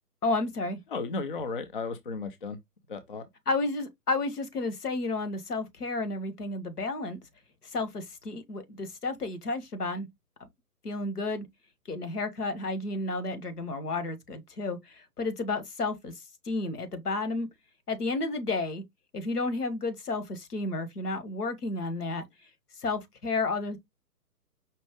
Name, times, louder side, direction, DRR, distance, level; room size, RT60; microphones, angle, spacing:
voice 1, 0.2-0.8 3.5-7.2 7.6-10.1 10.4-10.5 10.8-11.5 11.9-16.1 16.4-17.5 17.9-18.8 19.1-22.3 22.8-23.8, left 3 dB, 75° left, 1.4 m, -31 dB
voice 2, 0.9-2.6 2.9-3.3, left 4 dB, 35° left, 0.5 m, -34 dB
5.3 x 2.4 x 3.6 m
figure-of-eight pair, 135°, 47 cm